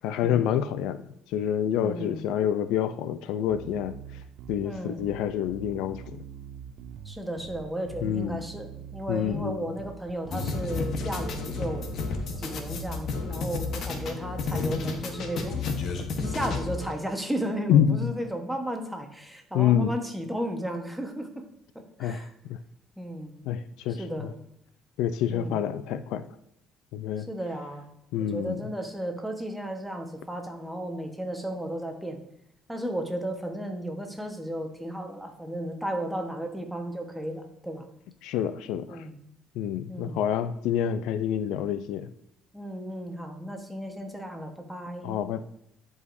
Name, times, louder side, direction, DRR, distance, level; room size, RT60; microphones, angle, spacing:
voice 1, 0.0-1.0 1.3-4.0 4.5-6.2 8.0-8.4 9.1-9.7 17.7-18.1 19.5-19.9 22.0-22.6 23.4-24.3 25.0-26.3 26.9-27.3 28.1-28.6 38.2-39.0 39.6-42.1 45.0-45.4, left 9 dB, 80° left, 12 dB, 0.4 m, -27 dB
voice 2, 1.8-2.2 4.6-5.0 7.0-11.9 12.4-15.6 15.9-21.4 21.7-22.3 23.0-23.3 24.0-24.3 25.3-25.6 27.2-27.9 28.2-32.2 32.7-37.9 38.9-39.2 39.9-40.2 42.5-45.2, right 1 dB, 5° right, 3 dB, 1.2 m, -34 dB
Bass guitar, 3.5-13.1, right 8 dB, 70° right, 0.5 m, -44 dB
sound 1, 10.3-16.9, left 4 dB, 60° left, 1.1 m, -31 dB
11.0 x 4.9 x 2.6 m, 0.79 s
cardioid pair, 115°, 0 cm